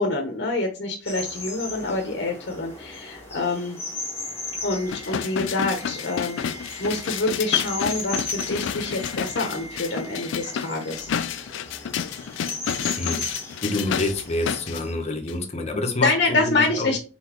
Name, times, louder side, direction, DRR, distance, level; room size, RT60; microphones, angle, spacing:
voice 1, 0.0-3.8 4.6-11.1 16.0-17.0, left 3 dB, 65° left, 2 dB, 0.9 m, -26 dB
sound 1, 1.0-14.9, left 2 dB, 15° left, 1.1 m, -37 dB
sound 2, 2.6-11.5 11.8-11.9, equal, 75° right, 1.5 m, -46 dB
sound 3, 4.9-14.8 15.3-15.4, left 8 dB, 85° left, 0.4 m, -30 dB
voice 2, 13.6-16.9, left 2 dB, 35° left, 4 dB, 0.9 m, -27 dB
4.0 x 3.8 x 2.9 m, 0.35 s
head